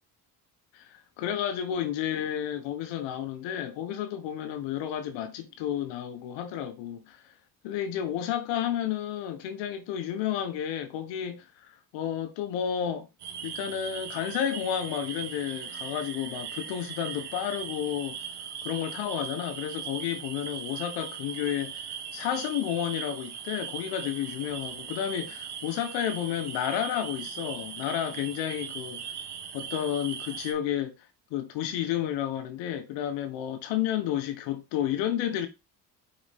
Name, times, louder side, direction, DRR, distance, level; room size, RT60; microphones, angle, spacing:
voice 1, 0.7-7.2 7.6-13.1 13.4-18.2 18.6-29.1 29.5-30.9 31.3-35.5, left 10 dB, 85° left, 1.4 m, -31 dB
sound 1, 13.2-30.5, right 7 dB, 65° right, 1.6 m, -39 dB
5.5 x 5.1 x 3.6 m
supercardioid pair, 70°, 43 cm